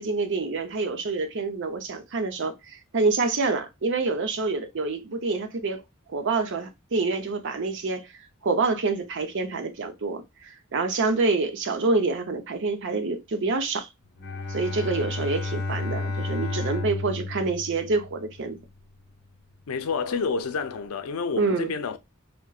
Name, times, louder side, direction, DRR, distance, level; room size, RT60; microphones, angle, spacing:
voice 1, 0.0-5.8 6.1-8.1 8.4-13.9 14.5-18.6 21.4-21.7, right 3 dB, 55° right, 0.6 m, -27 dB
Bowed string instrument, 14.2-18.5, left 3 dB, 50° left, 0.8 m, -32 dB
voice 2, 19.7-22.0, left 5 dB, 80° left, 0.5 m, -29 dB
3.8 x 2.1 x 2.3 m
head